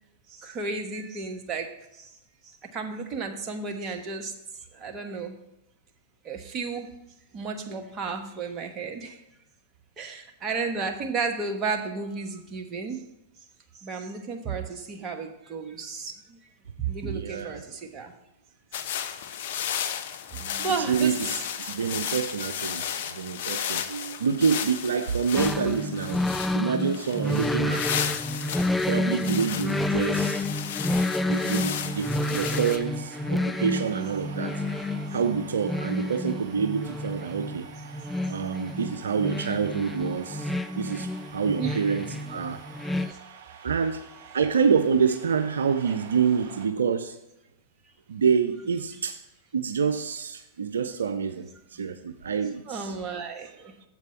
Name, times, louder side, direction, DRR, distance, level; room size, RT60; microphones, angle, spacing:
voice 1, 0.3-2.1 2.4-4.3 4.7-5.4 6.2-6.9 7.3-9.2 10.0-13.0 13.7-16.4 16.8-18.1 20.3-21.5 38.6-38.8 41.6-41.8 42.5-42.6 43.0-43.2 45.8-45.9 52.7-53.7, right 4 dB, 35° right, 4 dB, 1.2 m, -33 dB
voice 2, 17.1-17.6 20.9-21.2 21.6-26.2 26.5-28.1 28.9-30.5 31.3-34.6 35.1-37.7 38.3-42.6 43.6-44.0 44.3-47.2 48.1-49.2 49.5-52.9, right 6 dB, 80° right, 9 dB, 0.4 m, -27 dB
sound 1, 18.7-32.8, left 9 dB, 60° left, 0.6 m, -34 dB
sound 2, 25.4-43.1, left 1 dB, 5° left, 0.3 m, -29 dB
sound 3, 30.8-46.7, right 6 dB, 55° right, 1.3 m, -47 dB
7.5 x 4.7 x 6.9 m, 0.86 s
hypercardioid pair, 105°, 0 cm